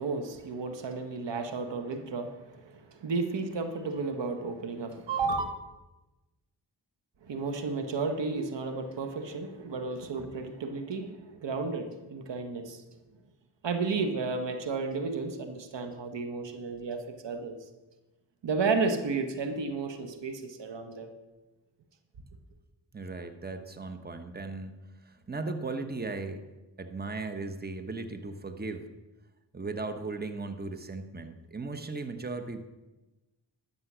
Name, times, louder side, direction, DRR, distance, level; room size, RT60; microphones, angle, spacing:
voice 1, 0.0-5.5 7.2-12.8 13.6-17.6 18.4-21.1, right 4 dB, 70° right, 7 dB, 1.3 m, -32 dB
voice 2, 22.9-26.4 26.8-28.9 29.5-32.6, right 3 dB, 20° right, 8 dB, 1.2 m, -37 dB
11.0 x 7.2 x 6.2 m, 1.1 s
supercardioid pair, 40°, 45 cm